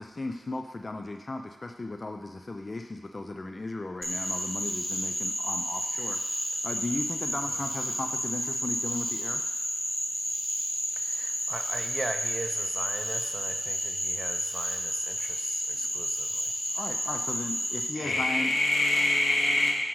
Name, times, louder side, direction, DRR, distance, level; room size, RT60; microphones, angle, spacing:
voice 1, 0.0-9.5 16.7-18.5, left 2 dB, 25° left, 5 dB, 0.3 m, -36 dB
Frog, 4.0-17.9, equal, 5° left, 0.9 m, -31 dB
voice 2, 10.9-16.5 18.0-18.2, right 2 dB, 30° right, 7 dB, 0.5 m, -39 dB
voice 3, 18.0-19.7, left 1 dB, 85° left, -2 dB, 1.6 m, -24 dB
7.4 x 6.1 x 4.6 m, 1.1 s
wide cardioid pair, 155°, 0 cm